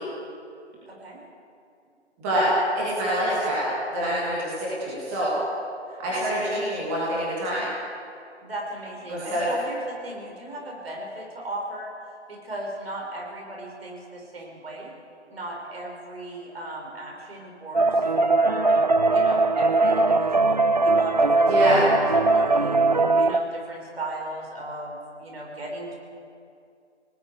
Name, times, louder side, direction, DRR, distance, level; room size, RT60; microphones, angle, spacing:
voice 1, 0.9-1.2 6.1-6.3 8.4-11.9 12.3-14.9 15.3-18.7 19.1-22.9 23.2-25.9, right 1 dB, 55° right, -1 dB, 5.7 m, -36 dB
voice 2, 2.7-5.4 6.0-7.7 9.1-9.5 21.5-21.8, equal, 10° right, -8 dB, 2.7 m, -26 dB
sound 1, 17.7-23.4, right 3 dB, 40° right, 0.5 m, -20 dB
28.5 x 19.0 x 4.9 m, 2.5 s
figure-of-eight pair, 165°, 35 cm